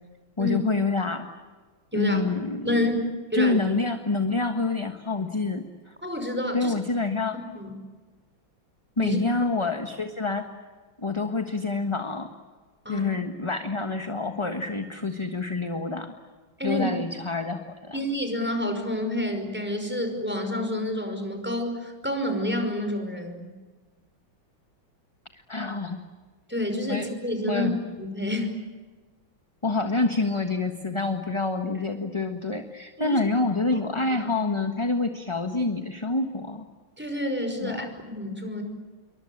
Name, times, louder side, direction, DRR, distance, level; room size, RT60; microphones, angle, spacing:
voice 1, 0.4-1.3 1.9-2.7 3.3-5.9 6.5-7.4 9.0-10.5 11.0-12.3 12.9-16.1 16.6-18.0 25.5-26.0 26.9-27.1 27.5-27.8 29.6-36.6 37.6-37.9, left 3 dB, 15° left, 6 dB, 1.3 m, -27 dB
voice 2, 2.6-3.0 3.3-3.6 6.0-6.7 7.6-7.7 9.0-9.2 12.9-13.1 16.6-16.8 17.9-23.5 26.5-27.7 28.0-28.5 33.0-33.2 37.0-38.6, left 1 dB, 5° right, 5 dB, 5.4 m, -28 dB
28.0 x 24.0 x 8.7 m, 1.4 s
omnidirectional pair, 2.2 m